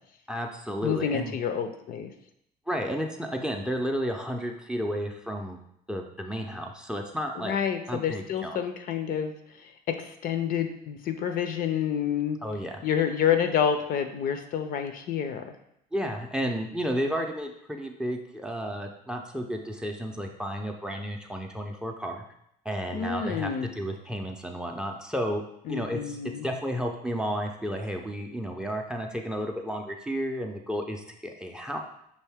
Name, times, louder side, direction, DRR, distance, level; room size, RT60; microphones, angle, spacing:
voice 1, 0.3-1.3 2.7-5.6 5.9-7.6 7.9-8.6 12.4-12.8 15.9-22.2 22.7-25.4 25.7-26.2 26.4-31.8, equal, 5° right, 3 dB, 0.4 m, -32 dB
voice 2, 0.8-2.1 7.4-9.3 9.6-12.4 12.8-15.5 22.9-23.7 25.7-26.5, left 8 dB, 60° left, 7 dB, 0.5 m, -28 dB
5.5 x 2.6 x 3.4 m, 0.74 s
cardioid pair, 110°, 17 cm